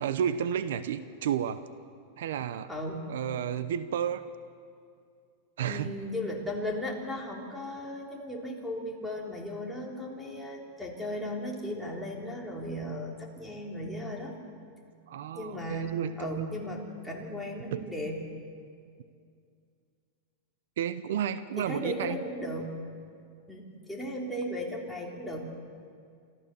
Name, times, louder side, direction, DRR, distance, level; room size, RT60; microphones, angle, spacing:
voice 1, 0.0-1.6 2.2-2.7 3.1-4.2 5.6-5.9 15.1-16.5 17.7-17.9 20.8-22.2, right 9 dB, 80° right, 13 dB, 0.8 m, -31 dB
voice 2, 2.7-3.0 5.6-14.3 15.3-18.2 21.6-22.8 23.5-25.4, left 1 dB, ahead, -3 dB, 3.3 m, -36 dB
26.5 x 14.0 x 7.0 m, 2.3 s
supercardioid pair, 140°, 0 cm